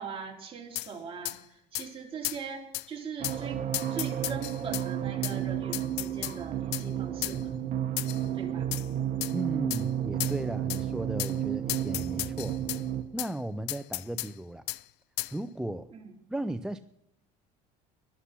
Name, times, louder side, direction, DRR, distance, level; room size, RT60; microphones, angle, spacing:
voice 1, 0.0-3.6 3.9-7.5 8.3-8.7 15.9-16.1, right 5 dB, 30° right, -1 dB, 3.3 m, -41 dB
sound 1, 0.7-0.9 1.2-1.4 1.7-1.9 2.2-2.4 2.7-2.9 3.2-3.4 3.7-4.9 5.2-5.4 5.7-6.4 6.7-6.9 7.2-7.4 8.0-8.2 8.7-8.9 9.2-9.3 9.7-9.8 10.2-10.4 10.7-10.8 11.2-11.3 11.7-12.8 13.2-13.3 13.7-14.3 14.7-14.8 15.2-15.3, left 20 dB, 70° left, 0.5 m, -34 dB
sound 2, 3.2-13.0, right 10 dB, 45° right, 1.3 m, -32 dB
voice 2, 9.3-12.6 13.1-14.6 15.3-15.9 16.3-16.8, right 1 dB, 5° right, 10 dB, 0.4 m, -35 dB
12.0 x 11.5 x 5.8 m, 0.78 s
supercardioid pair, 105°, 18 cm